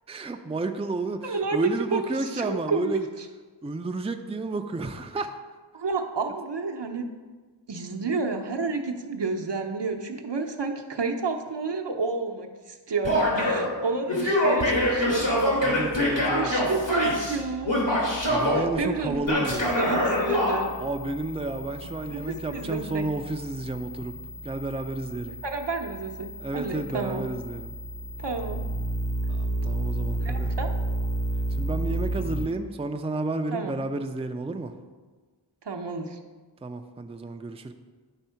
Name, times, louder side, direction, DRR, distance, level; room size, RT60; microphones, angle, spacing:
voice 1, 0.1-3.1 3.6-5.3 15.6-16.5 18.3-19.7 20.8-24.1 24.4-25.4 26.4-27.8 29.3-30.5 31.6-34.7 36.6-37.7, right 2 dB, 15° right, 6 dB, 0.4 m, -31 dB
voice 2, 1.2-3.3 5.7-7.1 7.7-15.6 16.0-17.7 18.5-20.7 22.1-23.1 25.4-27.2 28.2-28.6 30.2-30.7 33.5-33.8 35.6-36.2, right 4 dB, 65° right, 3 dB, 0.8 m, -30 dB
Male speech man speaking / Yell, 13.0-13.7 14.1-17.4 17.6-18.6 19.2-20.6, left 1 dB, 75° left, 2.3 m, -24 dB
sound 1, 14.6-32.5, right 1 dB, 45° left, 0.8 m, -34 dB
10.0 x 3.6 x 5.7 m, 1.4 s
wide cardioid pair, 50°, 45 cm